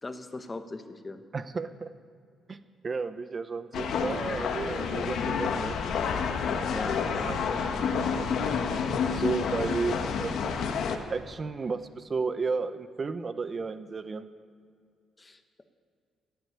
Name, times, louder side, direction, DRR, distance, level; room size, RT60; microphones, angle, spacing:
voice 1, 0.0-1.2 6.7-7.3 15.2-15.6, left 3 dB, 25° left, 8 dB, 1.2 m, -39 dB
voice 2, 1.3-1.9 2.5-2.6 2.8-5.7 7.2-7.4 9.0-10.6 11.1-14.3, right 4 dB, 35° right, 12 dB, 0.7 m, -33 dB
sound 1, 3.7-11.0, left 6 dB, 70° left, 1.3 m, -29 dB
15.5 x 8.1 x 9.6 m, 2.2 s
cardioid pair, 90°, 0 cm